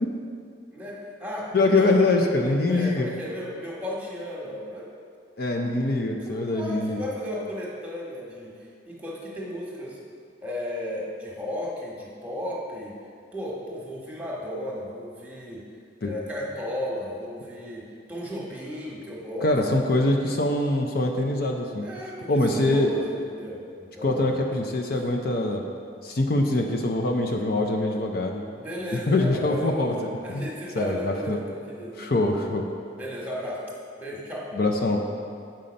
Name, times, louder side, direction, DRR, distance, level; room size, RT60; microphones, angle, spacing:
voice 1, 0.7-1.9 2.4-4.9 6.2-8.5 8.9-10.0 10.4-12.9 13.3-15.6 16.0-19.6 21.8-24.3 28.5-32.1 33.0-33.6 34.0-34.5, equal, 10° right, -4 dB, 1.3 m, -34 dB
voice 2, 1.5-3.1 5.4-7.0 16.0-16.1 19.4-21.8 22.3-22.9 24.0-25.6 26.0-28.4 28.9-29.9 30.3-30.5 30.7-31.4 32.0-32.7 34.5-35.2, left 2 dB, 55° left, 2 dB, 0.6 m, -24 dB
7.6 x 5.6 x 5.2 m, 2.3 s
head